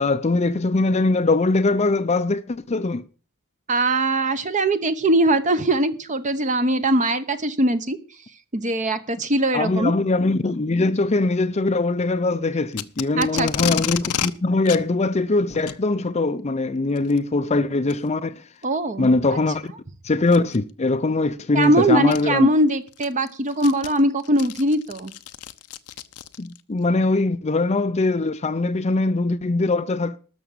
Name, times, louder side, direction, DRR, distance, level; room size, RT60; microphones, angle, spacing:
voice 1, 0.0-3.0 9.5-18.4 19.0-19.7 20.0-22.5 26.4-30.2, left 3 dB, 30° left, 0.6 m, -22 dB
voice 2, 3.7-8.0 8.5-9.9 13.2-13.5 18.6-19.1 21.5-25.1, right 1 dB, 35° right, 0.9 m, -21 dB
Packing tape duct tape, 12.7-14.3 14.7-14.8 15.5-15.8 17.0-17.2 17.9-18.0 18.6-18.7 20.3-20.6 21.6-21.7 22.1-22.2 22.7-26.6, left 9 dB, 90° left, 0.8 m, -30 dB
13.0 x 6.1 x 8.4 m
head